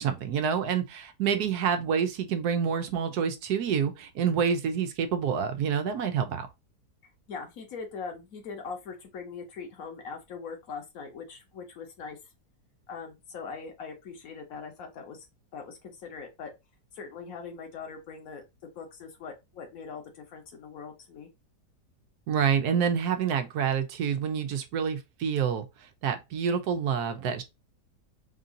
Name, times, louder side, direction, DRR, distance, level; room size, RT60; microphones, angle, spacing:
voice 1, 0.0-6.5 22.3-25.6 26.0-27.4, right 7 dB, 70° right, 1.2 m, -27 dB
voice 2, 7.3-12.2 12.9-15.3 15.5-16.5 16.9-21.3, left 5 dB, 55° left, 1.5 m, -41 dB
3.7 x 2.7 x 3.8 m
omnidirectional pair, 1.8 m